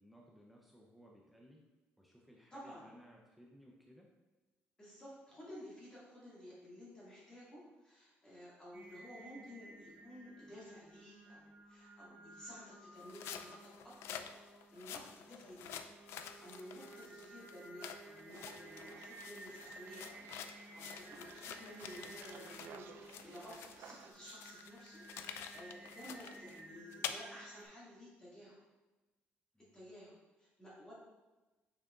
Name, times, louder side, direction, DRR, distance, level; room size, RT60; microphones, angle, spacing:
voice 1, 0.0-1.6 2.0-4.1 29.5-29.9, equal, ahead, -2 dB, 0.6 m, -60 dB
voice 2, 2.5-2.8 4.8-14.3 14.7-15.7 16.1-25.0 25.5-28.6 29.7-30.9, equal, 15° left, -8 dB, 2.1 m, -54 dB
Singing, 8.7-27.6, right 2 dB, 40° right, 1.1 m, -56 dB
sound 1, 13.0-22.8 23.1-27.1, left 9 dB, 75° left, 0.4 m, -48 dB
sound 2, 18.3-24.1, right 6 dB, 65° right, 0.5 m, -57 dB
6.7 x 6.0 x 2.4 m, 1.1 s
cardioid pair, 150°, 4 cm